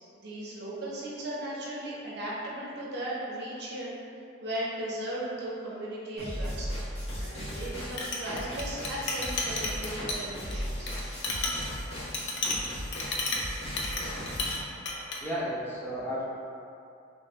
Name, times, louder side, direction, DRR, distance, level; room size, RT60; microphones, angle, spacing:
voice 1, 0.1-3.9 4.4-6.7 7.2-11.0, right 1 dB, 55° right, -6 dB, 0.8 m, -37 dB
sound 1, 6.2-14.5, equal, 35° left, 1.4 m, -36 dB
Chink clink, 7.6-14.6 14.9-15.2, left 2 dB, 60° left, 0.5 m, -33 dB
voice 2, 15.2-16.2, equal, 10° left, -8 dB, 0.6 m, -33 dB
3.3 x 3.2 x 3.1 m, 2.6 s
head